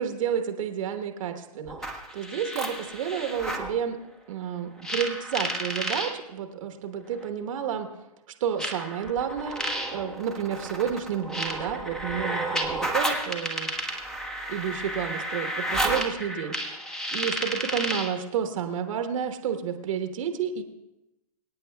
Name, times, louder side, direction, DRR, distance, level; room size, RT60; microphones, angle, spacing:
voice 1, 0.0-4.0 4.3-7.9 8.4-9.6 9.9-13.9 14.5-16.8 17.1-20.6, right 8 dB, 55° right, 6 dB, 1.2 m, -30 dB
sound 1, 1.7-3.7 4.8-6.1 7.2-7.3 8.6-18.2, right 1 dB, 5° left, 1.2 m, -31 dB
24.5 x 9.6 x 2.3 m, 0.93 s
hypercardioid pair, 125°, 20 cm